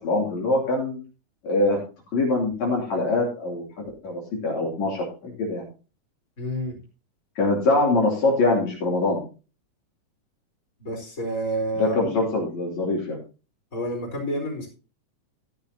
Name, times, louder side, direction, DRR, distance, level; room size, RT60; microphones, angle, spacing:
voice 1, 0.0-1.0 1.4-1.8 2.1-5.6 7.4-9.2 11.8-13.2, left 2 dB, 60° left, -2 dB, 4.1 m, -23 dB
voice 2, 6.4-6.8 10.8-12.1 13.7-14.7, right 1 dB, 25° left, 0 dB, 4.8 m, -29 dB
15.0 x 10.5 x 2.8 m, 0.33 s
omnidirectional pair, 3.6 m